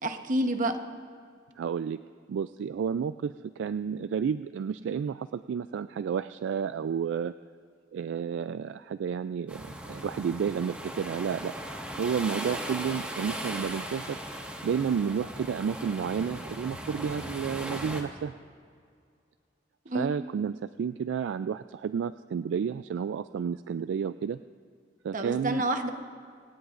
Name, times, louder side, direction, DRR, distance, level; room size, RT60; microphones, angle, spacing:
voice 1, 0.0-0.7 19.9-20.1 25.1-25.9, right 1 dB, 45° right, 6 dB, 1.0 m, -28 dB
voice 2, 1.6-2.0 2.3-7.3 7.9-11.5 12.0-14.2 14.6-18.3 19.9-24.4 25.0-25.6, right 7 dB, 80° right, 12 dB, 0.3 m, -31 dB
sound 1, 9.5-18.0, right 1 dB, 5° right, 1.5 m, -38 dB
26.0 x 17.5 x 2.5 m, 2.2 s
head